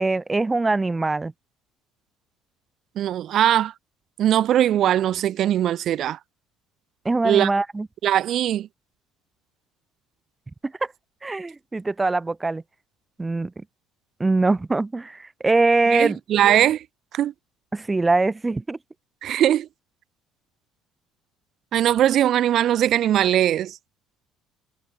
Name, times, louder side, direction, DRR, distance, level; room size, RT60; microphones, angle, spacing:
voice 1, 0.0-1.3 7.0-7.9 10.6-10.7 11.2-12.6 13.2-13.5 14.2-16.2 17.7-18.8, right 3 dB, 20° right, 1.0 m, -22 dB
voice 2, 2.9-3.7 4.2-6.2 7.2-7.5 8.0-8.7 15.9-16.8 17.1-17.3 19.2-19.7 21.7-23.8, right 11 dB, 55° right, 1.7 m, -20 dB
hypercardioid pair, 60°, 0 cm